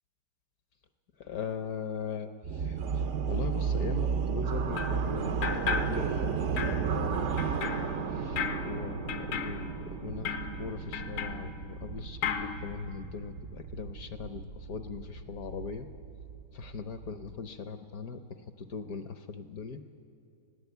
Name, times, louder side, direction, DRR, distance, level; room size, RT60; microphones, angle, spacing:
voice 1, 1.2-7.4 8.1-15.9 16.5-18.2 18.6-19.8, left 5 dB, 60° left, 9 dB, 1.0 m, -40 dB
sound 1, 2.4-17.3, right 6 dB, 75° right, 0.6 m, -34 dB
sound 2, 4.8-5.1 5.4-6.3 6.6-11.9 12.2-12.6, left 6 dB, 80° left, 1.8 m, -36 dB
20.0 x 16.5 x 8.1 m, 2.5 s
omnidirectional pair, 2.2 m